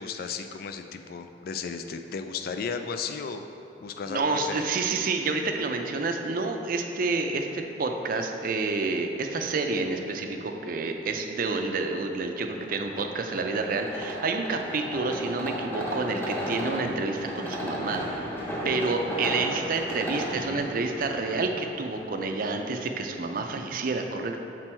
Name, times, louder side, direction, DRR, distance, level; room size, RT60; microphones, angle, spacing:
voice 1, 0.0-3.4 3.8-4.7 20.3-20.7, left 5 dB, 55° left, 7 dB, 0.3 m, -35 dB
voice 2, 4.0-18.1 18.6-24.4, right 3 dB, 50° right, 4 dB, 0.5 m, -29 dB
sound 1, 12.5-22.6, equal, 10° left, 0.8 m, -35 dB
6.0 x 4.5 x 4.4 m, 2.8 s
head